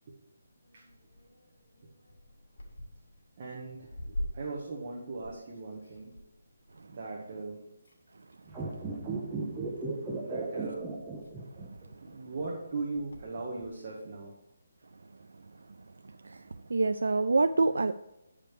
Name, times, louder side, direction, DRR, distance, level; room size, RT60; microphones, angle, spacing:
sound 1, 0.6-7.5 7.8-8.5 9.4-9.8 10.3-10.4 10.6-13.8, equal, 85° left, 2.5 m, -45 dB
voice 1, 3.4-6.1 6.9-7.6 10.2-10.9 12.0-14.3, right 3 dB, 30° right, -3 dB, 1.1 m, -39 dB
sound 2, 8.5-11.9 12.1-12.2, right 3 dB, 5° right, 0.7 m, -35 dB
voice 2, 16.7-17.9, right 3 dB, 75° right, 10 dB, 0.3 m, -26 dB
9.4 x 5.0 x 4.7 m, 0.90 s
hypercardioid pair, 180°, 0 cm